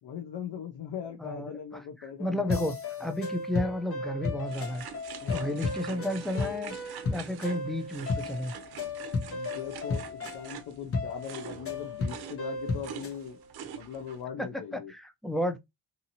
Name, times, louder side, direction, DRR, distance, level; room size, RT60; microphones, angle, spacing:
voice 1, 0.0-2.7 5.2-5.7 9.3-13.4 13.7-14.9, left 8 dB, 70° left, 0.7 m, -40 dB
voice 2, 1.2-4.9 5.3-6.7 7.0-8.5 14.7-15.6, left 1 dB, ahead, 0.3 m, -32 dB
sound 1, 2.5-13.2, left 3 dB, 35° left, 1.0 m, -34 dB
sound 2, 4.5-14.2, right 8 dB, 70° right, 0.6 m, -45 dB
2.7 x 2.6 x 2.7 m
cardioid pair, 90°, 40 cm